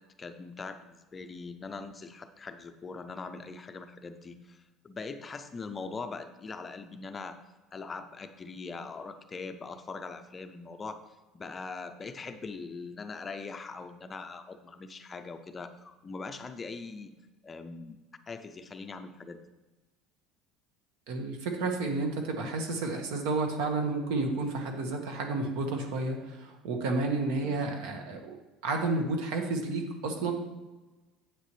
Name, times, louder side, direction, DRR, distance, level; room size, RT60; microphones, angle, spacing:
voice 1, 0.0-7.4 7.7-11.0 11.3-17.1 17.4-18.0 18.3-19.4 27.4-27.7, left 4 dB, 15° left, 8 dB, 0.4 m, -41 dB
voice 2, 21.1-28.3 28.6-30.3, right 3 dB, 80° right, 4 dB, 1.5 m, -31 dB
9.2 x 8.1 x 3.2 m, 1.1 s
cardioid pair, 170°, 0 cm